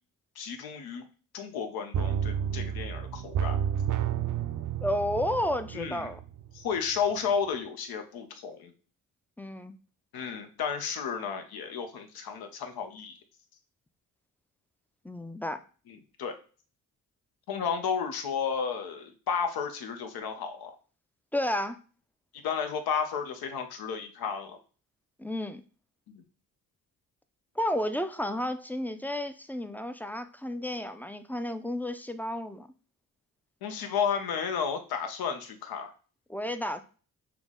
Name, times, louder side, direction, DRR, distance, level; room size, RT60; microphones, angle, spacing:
voice 1, 0.4-1.0 1.3-3.6 5.7-6.1 6.5-8.7 10.1-13.2 15.9-16.4 17.5-20.8 22.4-24.6 26.1-26.2 33.6-35.9, left 6 dB, 90° left, 0.7 m, -32 dB
sound 1, 1.9-6.6 6.9-7.0, right 8 dB, 60° right, 0.5 m, -31 dB
voice 2, 4.8-6.2 9.4-9.8 15.0-15.6 21.3-21.8 25.2-25.6 27.6-32.7 36.3-36.9, left 1 dB, 5° left, 0.3 m, -32 dB
5.9 x 2.0 x 3.6 m
cardioid pair, 70°, 36 cm